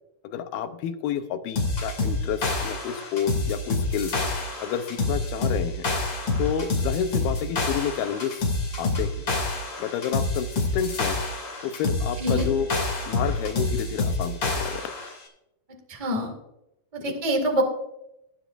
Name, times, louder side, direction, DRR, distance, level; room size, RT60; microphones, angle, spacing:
voice 1, 0.2-4.2 4.6-5.9 6.4-9.1 9.8-11.2 11.6-12.7 13.1-14.9 17.1-17.2, left 9 dB, 80° left, 8 dB, 2.7 m, -30 dB
sound 1, 1.5-15.1, left 2 dB, 35° left, 2.9 m, -27 dB
voice 2, 15.9-16.3 16.9-17.6, right 1 dB, 20° right, 3 dB, 0.8 m, -25 dB
17.5 x 10.0 x 2.6 m, 0.85 s
omnidirectional pair, 4.4 m